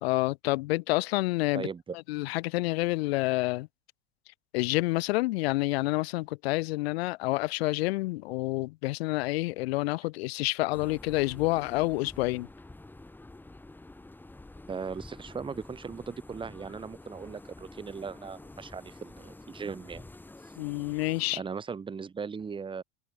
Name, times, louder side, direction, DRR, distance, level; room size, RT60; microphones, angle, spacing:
voice 1, 0.0-1.7 2.1-3.7 4.5-12.5 20.6-21.4, left 21 dB, 75° left, 0.9 m, -28 dB
voice 2, 1.5-2.0 14.7-20.1 21.4-22.8, right 5 dB, 15° right, 2.2 m, -38 dB
sound 1, 10.7-21.4, left 2 dB, 5° left, 4.5 m, -48 dB
supercardioid pair, 140°, 31 cm